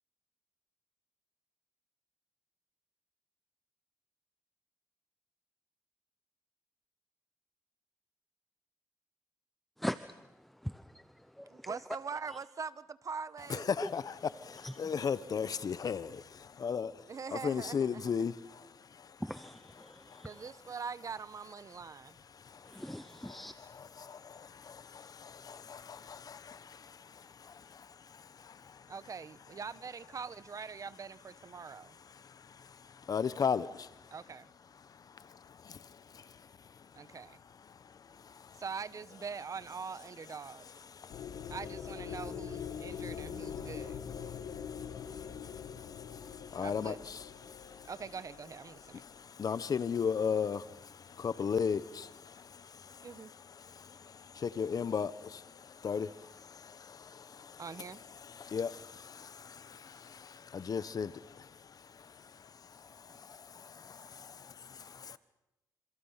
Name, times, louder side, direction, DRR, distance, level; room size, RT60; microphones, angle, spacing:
voice 1, 9.8-11.8 12.3-12.4 13.8-13.9 14.3-15.1 19.2-20.5 22.6-23.5, equal, ahead, 0.8 m, -42 dB
voice 2, 11.5-13.8 17.1-18.3 20.2-22.2 28.9-32.0 34.1-34.5 37.0-37.4 38.6-40.6 41.5-44.0 46.6-47.0 47.8-49.0 53.0-53.3 57.6-58.0, right 5 dB, 50° right, 1.1 m, -43 dB
voice 3, 13.5-14.0 14.4-17.0 17.3-19.2 19.8-20.3 22.3-22.8 23.3-23.4 24.0-28.9 32.2-33.9 35.1-36.3 37.8-38.6 40.9-41.5 42.9-43.0 43.5-43.7 44.2-47.9 48.9-53.1 53.6-57.6 58.2-65.2, left 6 dB, 55° left, 1.0 m, -38 dB
sound 1, 41.1-49.2, left 8 dB, 85° left, 1.7 m, -43 dB
26.5 x 26.5 x 5.8 m
cardioid pair, 70°, 8 cm